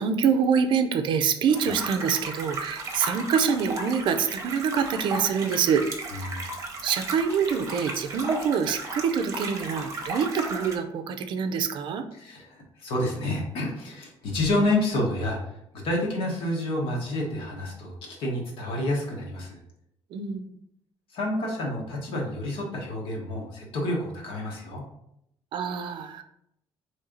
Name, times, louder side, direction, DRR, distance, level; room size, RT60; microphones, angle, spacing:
voice 1, 0.0-6.3 6.8-12.0 20.1-20.5 25.5-26.2, right 6 dB, 55° right, 7 dB, 0.4 m, -26 dB
sound 1, 1.5-10.7, right 2 dB, 30° right, 0.8 m, -35 dB
voice 2, 6.1-6.5 12.1-15.4 15.7-19.6 21.1-24.8, left 1 dB, 65° left, -1 dB, 1.3 m, -29 dB
4.2 x 3.2 x 3.8 m, 0.77 s
cardioid pair, 170°, 10 cm